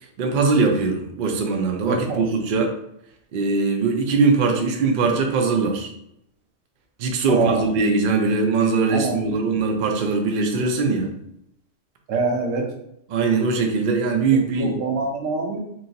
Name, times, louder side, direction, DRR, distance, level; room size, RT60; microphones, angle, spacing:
voice 1, 0.2-2.7 3.3-5.9 7.0-11.1 13.1-14.8, right 4 dB, 60° right, 3 dB, 0.5 m, -21 dB
voice 2, 1.9-2.2 7.3-7.6 8.9-9.4 12.1-12.7 14.3-15.6, right 3 dB, 85° right, 1 dB, 1.0 m, -24 dB
3.0 x 2.7 x 2.6 m, 0.78 s
omnidirectional pair, 1.3 m